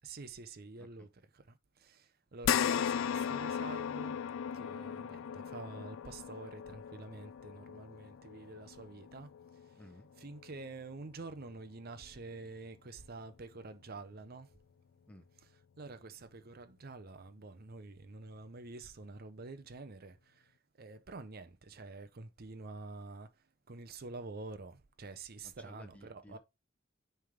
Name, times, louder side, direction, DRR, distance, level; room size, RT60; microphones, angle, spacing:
voice 1, 0.0-4.2 4.5-9.8 10.2-14.5 15.8-26.4, right 3 dB, 50° right, 0.7 m, -48 dB
sound 1, 2.4-11.1 11.5-11.6 13.1-13.2, left 8 dB, 75° left, 0.3 m, -37 dB
voice 2, 9.8-10.1 15.1-15.3 25.4-26.4, left 1 dB, 5° left, 1.0 m, -56 dB
9.1 x 3.4 x 3.7 m
head